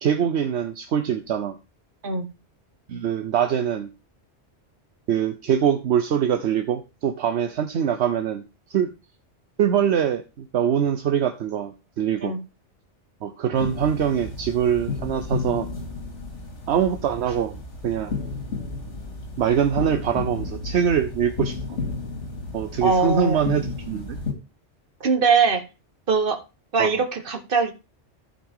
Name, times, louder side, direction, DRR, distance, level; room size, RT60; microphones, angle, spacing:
voice 1, 0.0-1.6 2.9-3.9 5.1-8.4 8.7-8.9 9.6-12.4 13.2-15.7 16.7-18.2 19.4-21.8 22.5-24.2 26.8-27.0, right 8 dB, 70° right, 8 dB, 1.0 m, -23 dB
sound 1, 13.6-24.3, left 4 dB, 85° left, 2.7 m, -33 dB
voice 2, 22.8-23.4 25.0-25.6 26.1-26.4 26.7-27.7, right 4 dB, 50° right, 7 dB, 1.4 m, -21 dB
15.0 x 5.2 x 3.6 m, 0.29 s
omnidirectional pair, 1.2 m